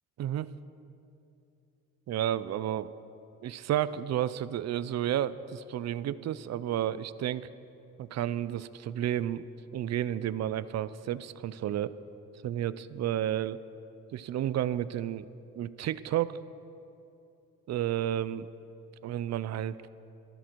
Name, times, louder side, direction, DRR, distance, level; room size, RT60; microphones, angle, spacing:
voice 1, 0.2-0.5 2.1-2.9 3.4-7.5 8.0-9.5 9.7-12.0 12.4-13.6 14.1-15.3 15.6-16.4 17.7-18.5 19.0-19.8, right 11 dB, 60° right, 16 dB, 0.6 m, -31 dB
17.0 x 13.5 x 4.6 m, 2.8 s
cardioid pair, 90°, 30 cm